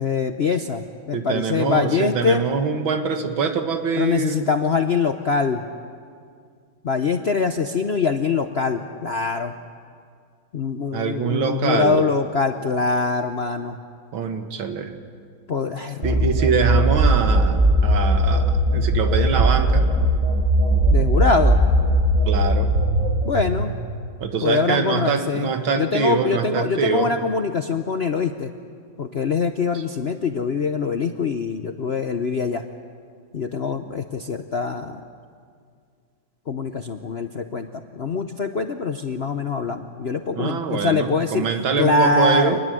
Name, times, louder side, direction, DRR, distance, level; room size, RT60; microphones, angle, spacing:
voice 1, 0.0-2.4 4.0-5.6 6.8-9.5 10.5-13.8 15.5-16.2 20.9-21.6 23.2-23.8 24.4-28.5 29.0-32.6 33.3-35.0 36.5-37.7 37.9-41.5 41.8-42.6, left 4 dB, 60° left, 6 dB, 0.6 m, -23 dB
voice 2, 1.1-4.5 10.9-12.1 14.1-14.9 16.0-19.9 22.3-22.7 24.2-27.1 40.3-42.6, right 5 dB, 75° right, 6 dB, 2.3 m, -24 dB
sound 1, 16.0-23.6, right 1 dB, 35° right, 4.5 m, -19 dB
26.0 x 21.0 x 7.7 m, 2.2 s
omnidirectional pair, 2.2 m